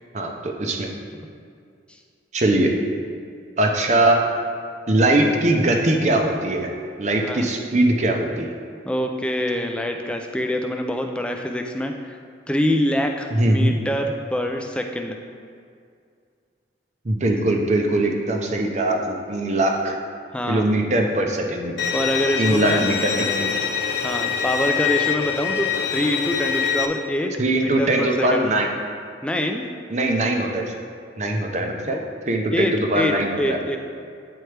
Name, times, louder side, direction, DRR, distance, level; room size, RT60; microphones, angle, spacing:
voice 1, 0.1-0.9 2.3-2.7 3.6-4.2 4.9-6.7 7.0-8.5 13.3-13.7 17.0-19.9 20.5-21.8 22.4-23.6 27.4-28.7 29.9-30.7 31.2-33.6, right 1 dB, 40° right, 2 dB, 0.6 m, -21 dB
voice 2, 8.9-12.2 12.5-15.2 20.3-20.7 21.9-22.9 24.0-28.5 29.2-29.7 32.5-33.8, left 1 dB, 5° left, 3 dB, 0.3 m, -25 dB
Bowed string instrument, 21.8-26.9, left 7 dB, 65° left, 0.5 m, -24 dB
9.2 x 4.4 x 3.3 m, 2.3 s
head